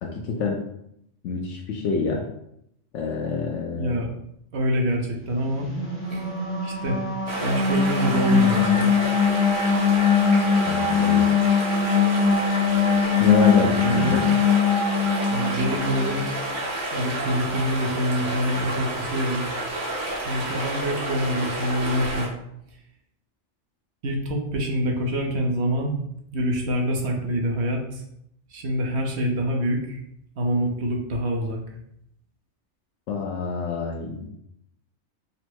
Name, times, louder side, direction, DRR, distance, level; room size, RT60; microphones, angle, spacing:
voice 1, 0.0-0.6 1.2-2.2 2.9-4.0 10.7-11.3 13.2-14.2 33.1-34.3, left 5 dB, 90° left, -2 dB, 1.0 m, -26 dB
voice 2, 3.7-4.1 4.5-5.7 6.1-6.3 6.6-7.0 7.4-8.9 13.6-14.2 15.3-16.2 16.9-19.4 20.2-22.3 24.0-26.0 26.3-28.0 28.5-30.0 30.4-31.6, equal, 65° right, 1 dB, 1.1 m, -26 dB
sound 1, 5.6-16.2, left 6 dB, 10° left, 1.0 m, -21 dB
sound 2, 7.3-22.3, right 1 dB, 90° right, 1.4 m, -30 dB
4.1 x 2.1 x 4.4 m, 0.75 s
omnidirectional pair, 1.2 m